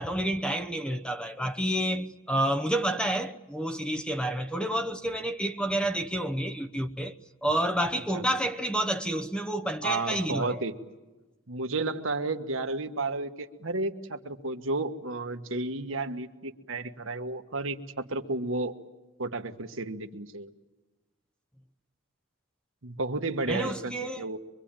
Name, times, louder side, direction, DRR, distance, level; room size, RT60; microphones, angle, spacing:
voice 1, 0.0-7.1 7.4-10.6 23.5-24.2, right 1 dB, 5° left, 0.9 m, -29 dB
voice 2, 9.8-10.7 11.5-18.7 19.2-20.5 22.8-24.4, right 2 dB, 65° right, 1.4 m, -32 dB
24.5 x 24.0 x 8.9 m
head